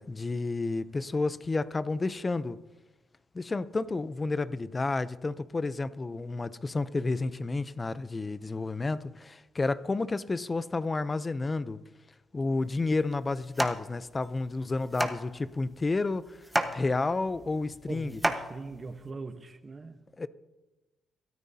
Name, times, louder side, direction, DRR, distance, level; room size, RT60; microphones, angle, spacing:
voice 1, 0.0-2.6 3.3-11.8 12.3-16.4 16.7-18.2 20.2-20.3, left 3 dB, 25° left, 0.6 m, -31 dB
sound 1, 12.6-19.1, right 1 dB, 5° right, 1.2 m, -34 dB
voice 2, 17.9-20.0, right 3 dB, 35° right, 1.1 m, -41 dB
23.0 x 13.5 x 2.8 m
cardioid pair, 90°, 0 cm